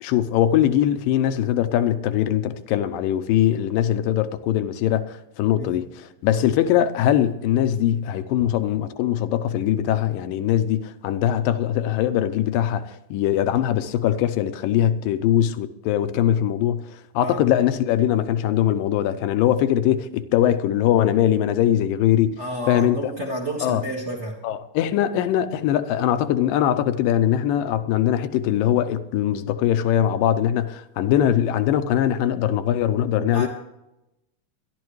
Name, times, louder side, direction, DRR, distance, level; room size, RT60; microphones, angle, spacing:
voice 1, 0.0-16.8 17.2-22.4 22.7-23.0 23.6-23.8 24.4-33.5, left 11 dB, 80° left, 2.3 m, -21 dB
voice 2, 22.4-24.4 33.2-33.5, right 1 dB, 35° right, 1.2 m, -30 dB
21.5 x 12.0 x 3.1 m
omnidirectional pair, 4.0 m